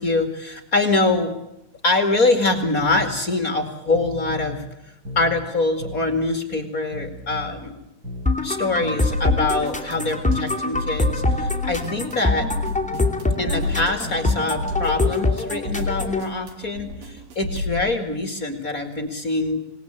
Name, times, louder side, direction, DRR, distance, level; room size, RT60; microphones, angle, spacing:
voice 1, 0.0-1.3 1.8-4.6 5.2-7.8 8.4-12.5 13.4-19.6, left 2 dB, 30° left, 7 dB, 2.0 m, -24 dB
sound 1, 2.8-3.1 3.9-4.6 5.0-5.4 5.8-6.1 6.9-7.6 8.0-8.4 8.8-9.1 9.9-10.6 11.0-11.4 11.8-12.1 12.9-13.6 14.0-14.4, left 1 dB, 20° right, 6.8 m, -35 dB
sound 2, 8.3-16.2, left 2 dB, 5° left, 1.5 m, -24 dB
sound 3, 9.1-17.8, left 2 dB, 75° right, 4.8 m, -30 dB
26.5 x 20.0 x 8.9 m, 0.87 s
omnidirectional pair, 4.5 m